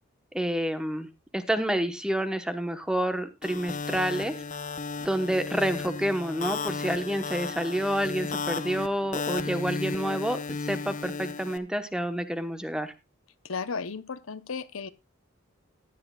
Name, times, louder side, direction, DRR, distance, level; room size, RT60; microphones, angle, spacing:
voice 1, 0.3-1.1 1.3-4.3 5.0-12.9, right 1 dB, 5° right, 1.0 m, -29 dB
sound 1, 3.4-11.6, left 4 dB, 40° left, 0.8 m, -34 dB
voice 2, 13.4-14.9, left 5 dB, 90° left, 0.8 m, -34 dB
16.0 x 10.5 x 2.3 m
head